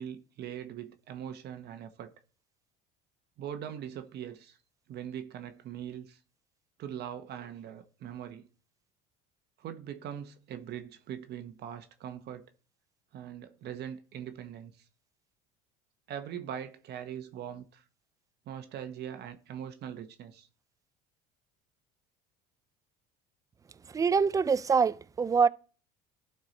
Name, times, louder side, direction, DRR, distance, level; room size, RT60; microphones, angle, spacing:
voice 1, 0.0-2.1 3.4-4.6 4.9-6.2 6.8-8.5 9.6-12.5 13.1-14.9 16.1-17.8 18.5-20.5, right 9 dB, 55° right, 1.0 m, -41 dB
voice 2, 23.9-25.5, right 5 dB, 15° right, 0.3 m, -24 dB
11.5 x 4.4 x 4.1 m
supercardioid pair, 95°, 21 cm